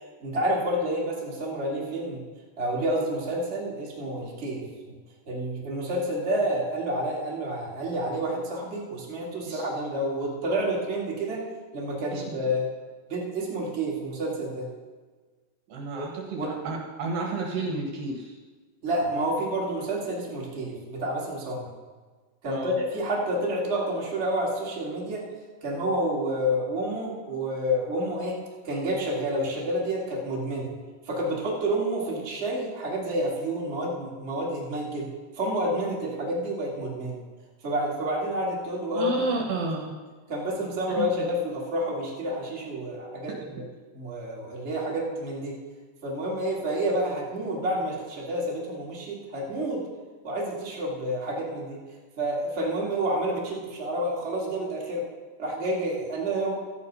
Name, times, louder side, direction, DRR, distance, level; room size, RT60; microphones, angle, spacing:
voice 1, 0.0-2.3 2.6-4.9 5.2-11.4 11.7-12.7 13.1-14.6 15.9-16.1 16.3-16.5 18.8-21.6 22.4-25.2 25.6-28.4 28.6-30.7 31.0-35.1 35.3-37.2 37.6-39.1 39.6-39.7 40.3-43.6 43.9-45.5 46.0-49.8 50.2-51.8 52.2-55.0 55.4-56.5, right 1 dB, 25° right, -4 dB, 1.6 m, -29 dB
voice 2, 15.7-18.4 22.5-22.8 38.9-39.9 41.0-41.2, right 3 dB, 65° right, 0 dB, 2.6 m, -31 dB
13.5 x 8.5 x 5.5 m, 1.4 s
omnidirectional pair, 4.9 m